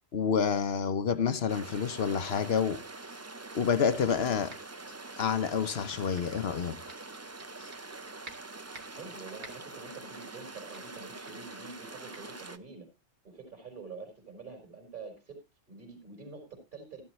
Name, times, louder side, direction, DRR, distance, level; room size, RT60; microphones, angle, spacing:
voice 1, 0.1-2.8 3.5-4.5 5.2-6.8, left 6 dB, 60° left, 1.0 m, -28 dB
sound 1, 1.5-12.6, right 3 dB, 25° right, 0.3 m, -45 dB
sound 2, 4.5-4.8 5.2-6.4 6.9-8.0 8.2-9.0 9.4-9.8 10.2-10.5 10.7-11.0 11.3-11.5 12.1-12.2, right 3 dB, 60° right, 2.1 m, -51 dB
voice 2, 8.9-12.9 13.2-15.4 15.7-17.0, right 4 dB, 40° right, 4.0 m, -46 dB
13.5 x 12.0 x 3.1 m
omnidirectional pair, 1.3 m